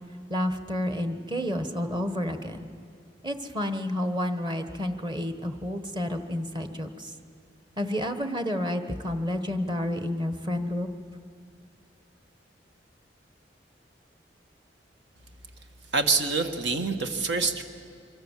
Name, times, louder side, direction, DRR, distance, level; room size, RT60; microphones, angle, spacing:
voice 1, 0.3-2.6 3.2-7.1 7.8-10.9, left 1 dB, 25° right, 8 dB, 1.4 m, -30 dB
voice 2, 15.9-17.6, right 4 dB, 80° right, 7 dB, 1.6 m, -26 dB
25.0 x 24.5 x 7.4 m, 2.2 s
head